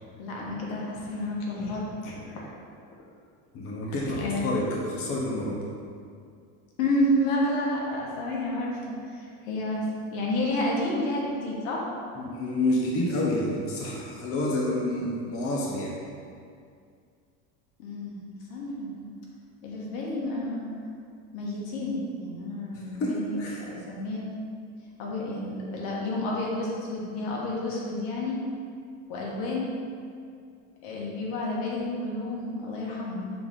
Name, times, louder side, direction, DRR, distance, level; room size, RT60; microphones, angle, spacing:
voice 1, 0.2-2.5 3.8-4.6 6.8-9.8 10.1-11.8 17.8-18.2 18.5-19.1 19.6-20.7 21.3-24.2 25.0-28.4 29.1-29.7 30.8-33.3, left 1 dB, 75° left, -3 dB, 1.5 m, -30 dB
voice 2, 3.5-5.6 12.2-15.9 23.0-23.6, left 1 dB, 40° left, -3 dB, 1.0 m, -28 dB
6.7 x 4.0 x 3.7 m, 2.3 s
cardioid pair, 135°, 37 cm